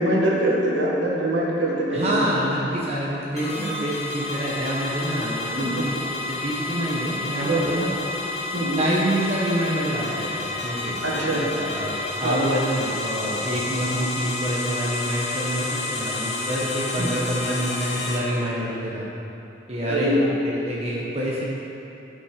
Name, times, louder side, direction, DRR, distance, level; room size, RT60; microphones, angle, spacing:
voice 1, 0.0-2.2 3.6-3.7 5.4-5.8 7.4-7.8 8.5-8.9 11.0-11.4 12.2-12.4 17.0-17.1 19.9-20.3, right 1 dB, 70° right, -4 dB, 1.8 m, -23 dB
voice 2, 1.9-6.0 6.3-8.2 8.8-19.0 19.7-20.2 20.4-21.4, equal, 35° right, -5 dB, 1.1 m, -27 dB
sound 1, 3.4-18.2, left 2 dB, 40° left, 1.3 m, -30 dB
12.0 x 5.4 x 5.2 m, 2.9 s
head